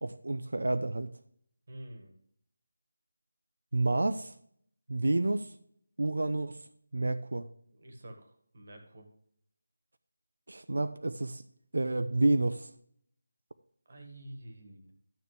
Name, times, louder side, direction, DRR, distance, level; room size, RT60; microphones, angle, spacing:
voice 1, 0.0-1.1 3.7-4.3 4.9-5.5 6.0-6.6 6.9-7.5 10.5-11.4 11.7-12.7, right 2 dB, 85° right, 11 dB, 0.6 m, -29 dB
voice 2, 1.7-2.1 7.7-9.1 13.9-14.9, right 1 dB, 35° right, 5 dB, 1.7 m, -48 dB
12.0 x 6.9 x 3.3 m, 0.67 s
figure-of-eight pair, 180°, 0 cm